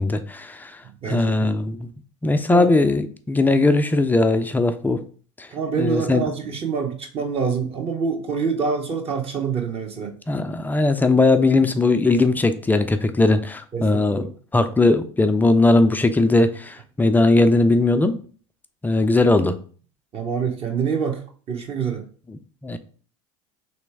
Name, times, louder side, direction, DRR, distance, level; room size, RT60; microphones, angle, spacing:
voice 1, 0.0-0.7 1.1-1.9 2.2-5.0 5.8-6.3 10.3-14.2 14.5-18.2 18.8-19.5 22.3-22.8, left 2 dB, 10° left, 8 dB, 0.4 m, -19 dB
voice 2, 0.8-1.5 2.5-2.7 5.5-10.2 13.7-14.3 20.1-21.2 21.5-22.0, right 5 dB, 35° right, 2 dB, 1.1 m, -26 dB
3.3 x 3.1 x 4.5 m, 0.42 s
hypercardioid pair, 85°, 16 cm